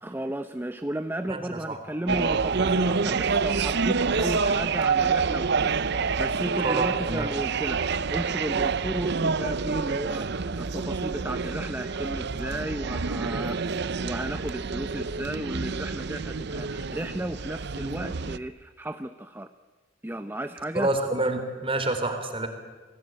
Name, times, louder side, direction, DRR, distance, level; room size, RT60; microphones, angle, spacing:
voice 1, 0.0-19.5 20.0-20.9, right 1 dB, 10° right, 9 dB, 0.7 m, -34 dB
voice 2, 1.3-1.8 6.6-7.3 20.7-22.5, right 2 dB, 30° right, 7 dB, 3.7 m, -28 dB
sound 1, 2.1-18.4, right 5 dB, 60° right, 0.7 m, -27 dB
29.0 x 20.0 x 9.2 m, 1.4 s
head